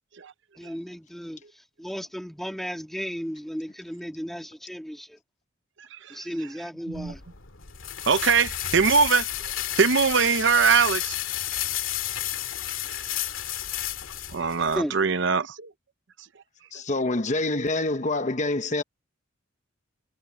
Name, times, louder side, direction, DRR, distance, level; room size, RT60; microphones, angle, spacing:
voice 1, 0.6-1.4 1.8-5.2 6.1-7.2 14.8-14.9, equal, ahead, 1.9 m, -34 dB
voice 2, 5.9-6.3 6.9-7.1 8.1-9.3 9.8-11.1 12.9-13.0 14.3-15.7, right 5 dB, 60° right, 0.7 m, -22 dB
sound 1, 6.9-14.8, left 12 dB, 85° left, 2.1 m, -31 dB
voice 3, 16.7-18.8, left 2 dB, 35° left, 0.9 m, -26 dB
head